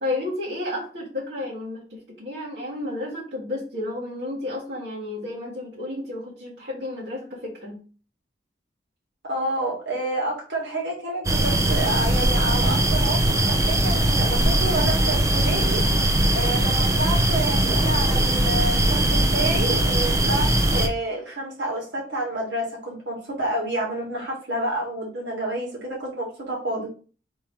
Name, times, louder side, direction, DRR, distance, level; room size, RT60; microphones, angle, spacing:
voice 1, 0.0-7.8, left 2 dB, 70° right, -7 dB, 1.7 m, -32 dB
voice 2, 9.3-15.8 16.3-20.5 20.7-26.9, right 1 dB, 85° right, -3 dB, 2.0 m, -29 dB
sound 1, 11.2-20.9, right 1 dB, 20° right, 0.5 m, -20 dB
3.6 x 2.9 x 4.6 m, 0.38 s
head